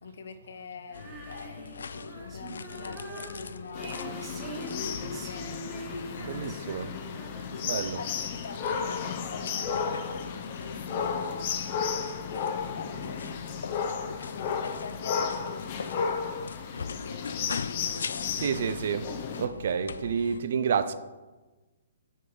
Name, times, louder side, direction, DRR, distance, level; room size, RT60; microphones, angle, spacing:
voice 1, 0.0-6.4 7.5-11.8 12.3-13.6 14.2-16.3 16.6-18.4, left 5 dB, 65° left, 0.7 m, -44 dB
sound 1, 0.9-20.4, left 5 dB, 85° left, 0.4 m, -41 dB
Female singing, 0.9-8.4, right 2 dB, 15° right, 1.0 m, -44 dB
sound 2, 3.7-19.5, left 6 dB, 30° left, 0.6 m, -34 dB
voice 2, 6.2-7.0 7.7-8.0 18.4-19.1 19.4-20.9, right 7 dB, 55° right, 0.5 m, -29 dB
6.4 x 5.4 x 6.1 m
hypercardioid pair, 170°, 0 cm